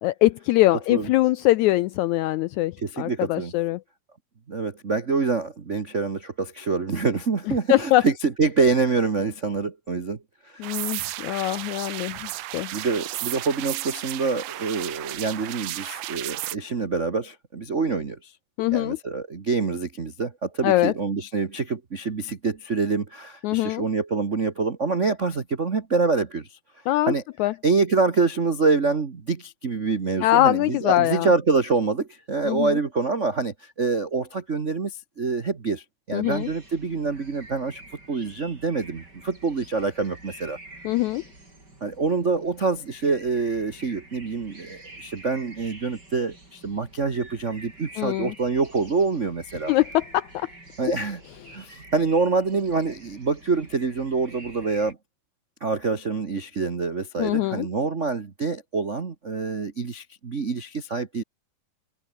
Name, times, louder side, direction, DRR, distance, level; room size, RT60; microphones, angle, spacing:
voice 1, 0.0-3.8 7.7-8.0 10.6-12.7 18.6-19.0 20.6-20.9 23.4-23.8 26.9-27.1 27.4-27.5 30.2-31.3 32.4-32.8 36.1-36.5 40.8-41.2 48.0-48.3 49.7-50.5 50.8-50.9 57.2-57.7, left 16 dB, 85° left, 1.7 m, -22 dB
voice 2, 2.8-3.5 4.5-10.7 12.7-18.3 18.7-26.6 27.1-27.2 27.6-37.8 38.1-40.6 41.8-49.7 50.8-51.2 51.5-55.0 55.6-61.2, right 4 dB, 65° right, 0.7 m, -26 dB
sound 1, 10.6-16.6, right 16 dB, 85° right, 2.5 m, -33 dB
sound 2, 36.2-54.9, right 2 dB, 30° right, 8.4 m, -47 dB
omnidirectional pair, 3.9 m